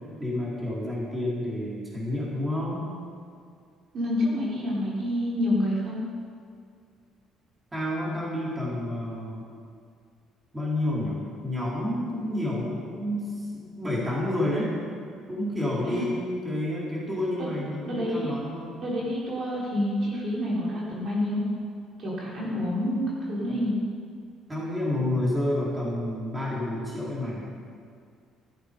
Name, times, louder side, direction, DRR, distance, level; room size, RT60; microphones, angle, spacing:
voice 1, 0.2-2.8 7.7-9.4 10.5-14.7 15.3-18.8 24.5-27.5, left 1 dB, 15° right, -6 dB, 4.4 m, -29 dB
voice 2, 3.9-6.0 15.8-16.0 17.4-17.5 17.9-18.3 18.8-21.4 22.0-23.7, left 1 dB, 50° right, -5 dB, 3.9 m, -28 dB
14.0 x 13.0 x 5.6 m, 2.2 s
cardioid pair, 120°, 0 cm